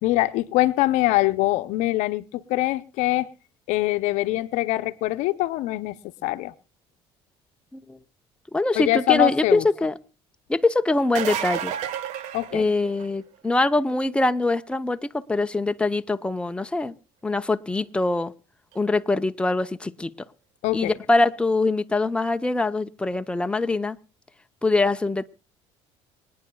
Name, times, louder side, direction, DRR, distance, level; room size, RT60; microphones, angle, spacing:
voice 1, 0.0-3.3 3.7-6.5 8.7-9.6 12.3-12.7 20.6-21.0, left 17 dB, 75° left, 12 dB, 0.7 m, -23 dB
voice 2, 8.5-9.9 10.5-11.7 12.5-16.9 17.2-18.3 18.7-20.1 20.7-24.0 24.6-25.3, left 2 dB, 10° left, 9 dB, 0.8 m, -23 dB
sound 1, 11.0-13.2 18.7-18.8 20.7-20.8, right 9 dB, 75° right, 1.3 m, -30 dB
26.0 x 9.6 x 2.3 m, 0.35 s
supercardioid pair, 80°, 12 cm